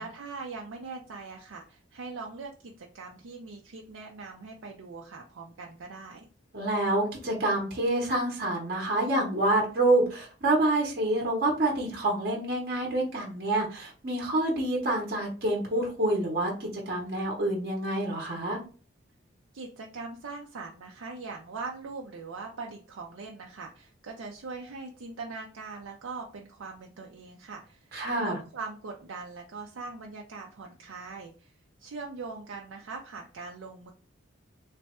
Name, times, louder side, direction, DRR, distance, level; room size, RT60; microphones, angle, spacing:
voice 1, 0.0-6.3 19.5-31.5 31.8-33.9, right 4 dB, 80° right, 0 dB, 0.5 m, -41 dB
voice 2, 6.5-18.6 27.9-28.4, right 1 dB, 45° right, 0 dB, 0.8 m, -27 dB
3.3 x 2.2 x 4.1 m, 0.38 s
head